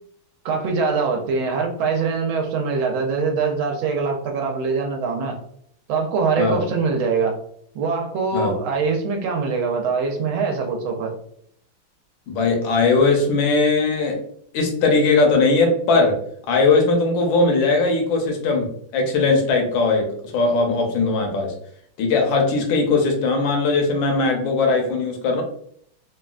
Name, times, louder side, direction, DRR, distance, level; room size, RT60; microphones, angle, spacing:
voice 1, 0.4-5.4 5.9-7.4 7.7-11.1, right 4 dB, 80° right, 2 dB, 1.4 m, -23 dB
voice 2, 12.3-14.2 14.5-16.2 16.5-21.5 22.0-25.4, left 3 dB, 70° left, 2 dB, 1.4 m, -19 dB
3.7 x 2.2 x 2.4 m, 0.65 s
omnidirectional pair, 2.3 m